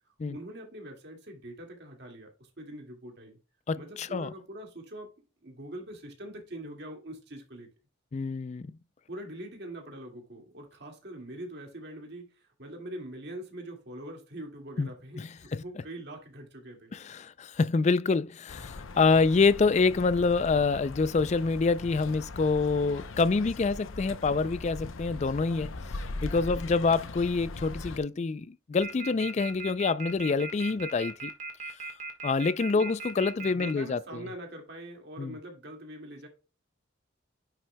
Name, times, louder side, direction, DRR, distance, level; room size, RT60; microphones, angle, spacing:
voice 1, 0.1-3.4 3.8-5.1 5.4-7.7 9.1-17.0 26.4-26.8 32.7-32.9 33.4-36.3, right 1 dB, 55° right, 2.1 m, -43 dB
voice 2, 3.7-4.3 8.1-8.7 14.8-14.9 15.2-15.6 16.9-25.7 26.2-31.3 32.2-34.2 35.2-35.3, left 4 dB, 35° left, 0.3 m, -26 dB
sound 1, 18.5-28.0, left 3 dB, 90° left, 0.7 m, -40 dB
sound 2, 28.8-33.7, right 4 dB, 40° right, 1.5 m, -38 dB
9.8 x 6.1 x 2.2 m
head